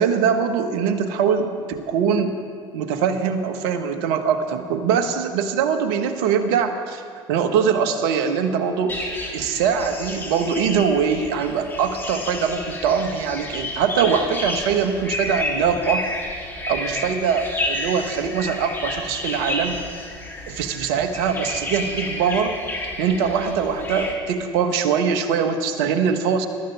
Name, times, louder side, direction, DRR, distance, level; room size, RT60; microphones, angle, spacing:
voice 1, 0.0-2.4 2.7-7.0 7.3-9.0 9.3-16.1 16.7-19.8 20.5-22.6 23.0-26.5, right 6 dB, 70° right, 7 dB, 1.4 m, -22 dB
sound 1, 8.9-24.1, left 1 dB, 15° left, 3.4 m, -31 dB
23.0 x 13.0 x 3.5 m, 2.2 s
hypercardioid pair, 70°, 14 cm